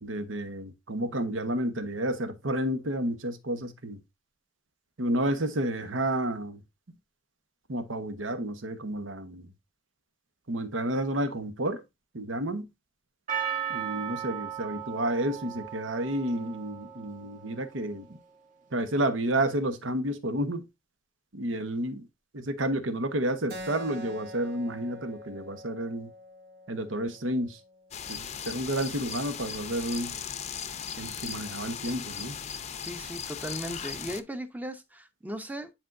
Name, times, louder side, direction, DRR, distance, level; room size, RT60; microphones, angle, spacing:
voice 1, 0.0-4.0 5.0-6.6 7.7-9.5 10.5-11.8 12.1-12.7 13.7-18.1 18.7-20.6 21.3-22.1 22.3-26.1 26.7-27.6 28.1-30.2 31.0-32.4, right 1 dB, 80° right, 1.1 m, -30 dB
Percussion, 13.3-17.8, right 8 dB, 40° right, 1.4 m, -36 dB
Keyboard (musical), 23.5-28.6, equal, 60° right, 1.5 m, -45 dB
sound 1, 27.9-34.2, left 7 dB, 35° left, 0.6 m, -38 dB
voice 2, 32.8-35.7, equal, 10° right, 0.7 m, -37 dB
10.0 x 4.5 x 2.6 m
head